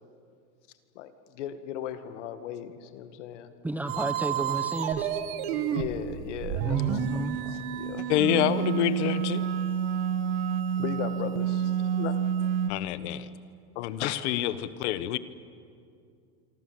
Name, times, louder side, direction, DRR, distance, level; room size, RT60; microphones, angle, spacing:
voice 1, 1.0-3.5 5.7-8.1 10.8-11.7 12.0-12.2 14.0-14.2, left 10 dB, 90° left, 10 dB, 2.1 m, -37 dB
voice 2, 3.6-5.1 6.6-7.4, right 1 dB, 5° right, 10 dB, 0.9 m, -32 dB
sound 1, 3.9-12.7, right 9 dB, 60° right, 1.9 m, -29 dB
voice 3, 8.1-9.4 12.7-13.3 13.8-15.2, left 12 dB, 75° left, 15 dB, 1.1 m, -27 dB
26.5 x 24.5 x 7.8 m, 2.4 s
supercardioid pair, 165°, 35 cm